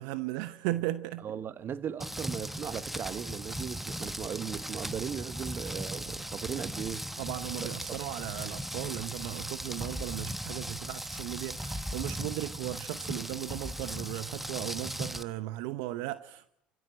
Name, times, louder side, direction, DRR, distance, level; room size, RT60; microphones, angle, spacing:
voice 1, 0.0-1.3 7.2-16.5, right 16 dB, 75° right, 0.8 m, -36 dB
voice 2, 1.2-7.1 7.6-7.7, right 8 dB, 45° right, 1.4 m, -37 dB
Rain, 2.0-15.2, equal, 5° right, 1.2 m, -38 dB
29.0 x 15.5 x 7.8 m
hypercardioid pair, 75°, 5 cm